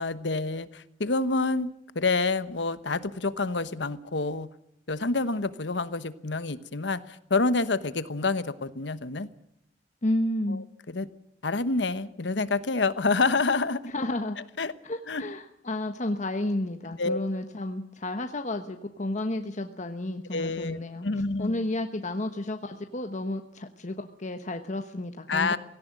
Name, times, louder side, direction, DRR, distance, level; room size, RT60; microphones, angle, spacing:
voice 1, 0.0-4.5 4.9-9.3 10.5-10.6 10.9-11.1 11.4-13.9 14.6-14.7 15.1-15.2 17.0-17.2 20.3-21.7 25.3-25.6, left 3 dB, 75° left, 14 dB, 1.1 m, -28 dB
voice 2, 10.0-10.6 13.9-14.4 14.8-21.1 21.4-25.6, left 1 dB, 45° left, 6 dB, 1.2 m, -31 dB
17.5 x 17.5 x 9.4 m, 0.80 s
head